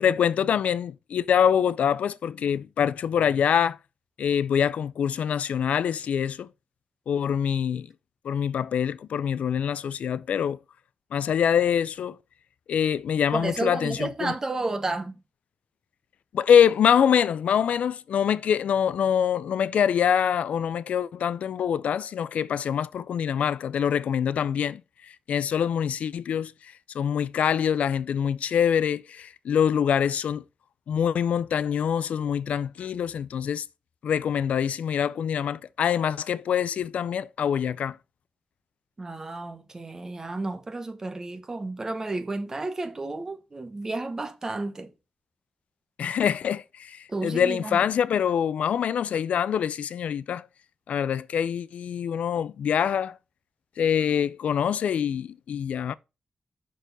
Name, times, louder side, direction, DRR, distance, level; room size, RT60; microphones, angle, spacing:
voice 1, 0.0-3.8 4.2-6.5 7.1-7.9 8.2-10.6 11.1-12.2 12.7-14.3 16.3-24.8 25.3-30.4 30.9-33.6 34.0-38.0 46.0-50.5 50.9-53.2 53.8-55.9, left 8 dB, 85° left, 0.4 m, -25 dB
voice 2, 13.3-15.1 39.0-44.9 47.1-47.8, right 2 dB, 25° right, 1.0 m, -32 dB
6.1 x 4.5 x 5.2 m
wide cardioid pair, 145°, 2 cm